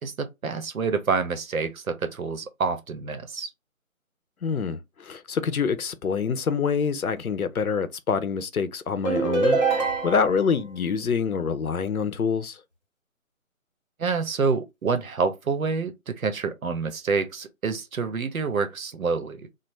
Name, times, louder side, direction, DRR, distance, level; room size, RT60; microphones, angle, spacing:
voice 1, 0.0-3.5 14.0-19.5, right 5 dB, 75° right, 0.8 m, -27 dB
voice 2, 4.4-12.6, left 6 dB, 90° left, 0.7 m, -26 dB
sound 1, 9.0-10.5, right 4 dB, 30° right, 0.8 m, -24 dB
3.3 x 2.0 x 3.1 m
figure-of-eight pair, 180°, 42 cm